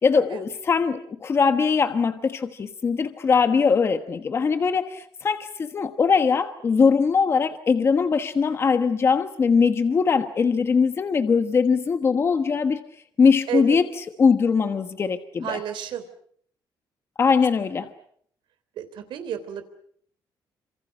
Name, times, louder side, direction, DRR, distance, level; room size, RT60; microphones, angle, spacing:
voice 1, 0.0-12.8 13.2-13.9 14.2-15.6 17.2-17.9, left 5 dB, 30° left, 8 dB, 1.3 m, -21 dB
voice 2, 13.5-13.8 15.4-16.0 18.8-19.6, right 9 dB, 80° right, 10 dB, 3.4 m, -31 dB
28.0 x 27.0 x 6.4 m, 0.63 s
cardioid pair, 170°, 8 cm